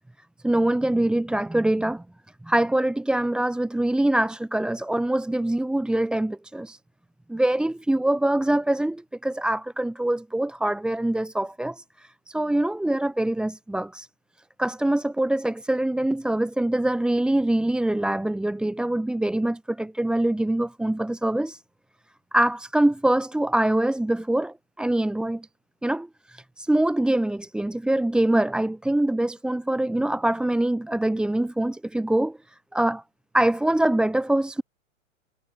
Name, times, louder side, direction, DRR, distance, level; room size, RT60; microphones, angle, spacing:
voice 1, 0.4-2.0 2.4-6.8 7.3-14.1 14.6-21.6 22.3-25.5 25.8-32.4 32.7-33.0 33.3-34.6, right 1 dB, ahead, 2.3 m, -24 dB
hypercardioid pair, 150°, 40 cm